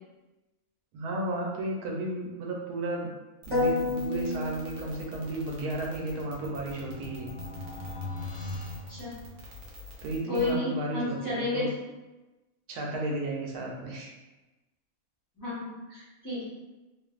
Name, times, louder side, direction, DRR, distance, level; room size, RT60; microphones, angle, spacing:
voice 1, 0.9-3.1 3.5-7.3 10.0-11.7 12.7-14.1, right 2 dB, 85° right, -1 dB, 1.1 m, -33 dB
sound 1, 3.4-10.6, left 2 dB, 65° right, 0.8 m, -47 dB
sound 2, 3.5-5.5, left 2 dB, 20° right, 1.0 m, -30 dB
sound 3, 6.4-9.8, left 2 dB, 75° left, 1.1 m, -40 dB
voice 2, 10.3-11.7 13.1-13.2 15.4-16.4, left 2 dB, 15° left, -11 dB, 0.9 m, -32 dB
2.5 x 2.4 x 2.3 m, 1.1 s
omnidirectional pair, 1.6 m